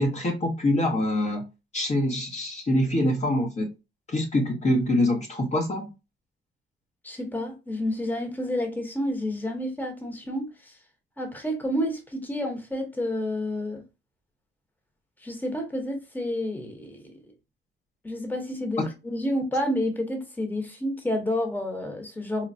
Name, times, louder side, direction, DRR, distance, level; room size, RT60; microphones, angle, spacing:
voice 1, 0.0-1.5 1.7-3.7 4.1-5.9 18.8-18.9, left 1 dB, 35° left, 0.9 m, -25 dB
voice 2, 7.0-10.7 11.2-13.8 15.2-17.1 18.0-22.5, left 1 dB, 10° left, 1.0 m, -30 dB
4.3 x 2.0 x 2.6 m
cardioid pair, 90°, 20 cm